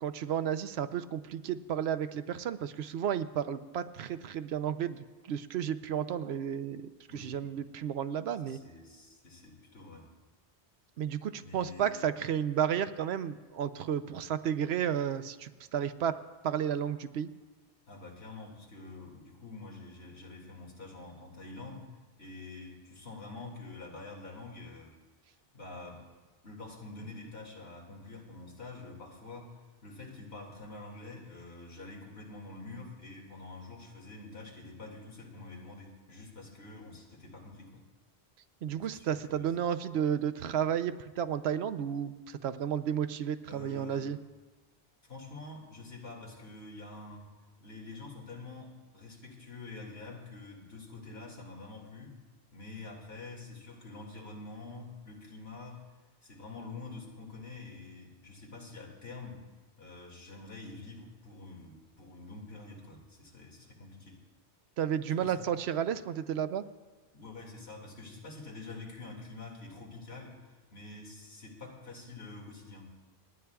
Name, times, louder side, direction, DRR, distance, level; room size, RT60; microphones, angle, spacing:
voice 1, 0.0-8.6 11.0-16.2 16.4-17.3 38.6-44.2 64.8-66.7, right 9 dB, 75° right, 11 dB, 0.8 m, -32 dB
voice 2, 7.1-7.4 8.4-10.1 11.4-12.0 17.9-21.9 22.2-24.9 25.5-26.1 26.4-37.8 38.7-39.5 43.5-44.0 45.1-47.3 47.6-52.2 52.5-55.8 56.2-59.4 59.8-64.2 65.2-65.4 67.1-73.0, left 3 dB, 70° left, -1 dB, 2.4 m, -47 dB
29.0 x 9.7 x 2.3 m, 1.3 s
omnidirectional pair, 1.1 m